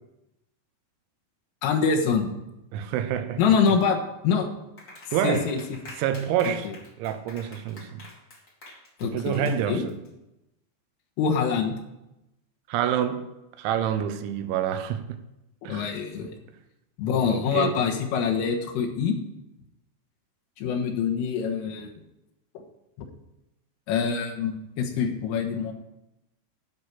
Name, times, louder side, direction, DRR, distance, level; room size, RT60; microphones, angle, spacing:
voice 1, 1.6-2.3 3.4-4.5 5.2-5.6 6.7-6.8 9.0-9.9 11.2-11.8 15.7-16.4 17.0-19.2 20.6-21.9 23.0-23.1 23.9-25.7, left 6 dB, 85° left, 2 dB, 3.9 m, -25 dB
voice 2, 2.7-3.4 5.1-5.5 6.0-6.7 7.0-8.0 9.0-10.0 12.7-13.3 13.6-15.2 15.6-15.9 17.3-17.8, right 9 dB, 80° right, 9 dB, 3.1 m, -27 dB
Clapping, 4.8-10.1, left 2 dB, 55° left, 1.0 m, -46 dB
11.5 x 5.9 x 8.2 m, 0.92 s
omnidirectional pair, 5.7 m